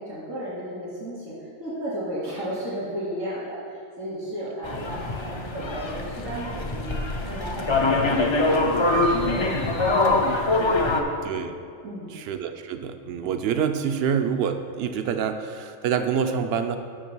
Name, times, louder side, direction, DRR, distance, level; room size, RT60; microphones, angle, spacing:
voice 1, 0.0-1.3 1.6-6.9 7.2-11.4 11.8-12.1, equal, 85° right, -11 dB, 2.8 m, -35 dB
sound 1, 4.6-11.0, left 2 dB, 50° left, 0.3 m, -23 dB
voice 2, 12.1-16.8, right 7 dB, 65° right, 8 dB, 0.7 m, -26 dB
6.4 x 6.1 x 6.1 m, 2.3 s
omnidirectional pair, 1.4 m